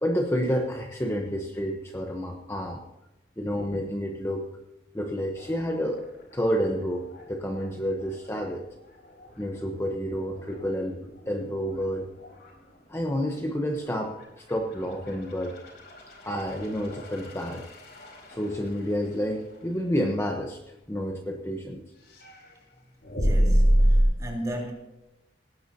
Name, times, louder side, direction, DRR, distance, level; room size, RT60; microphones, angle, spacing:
voice 1, 0.0-2.8 3.4-4.5 4.9-6.1 6.3-8.6 9.4-12.1 12.9-15.5 16.2-17.7 18.3-21.8, equal, 15° left, 1.0 m, -29 dB
sound 1, 5.3-21.4 21.9-24.0, equal, 60° left, 4.4 m, -31 dB
voice 2, 23.1-24.7, equal, 20° right, 3.7 m, -35 dB
19.0 x 16.0 x 2.9 m
head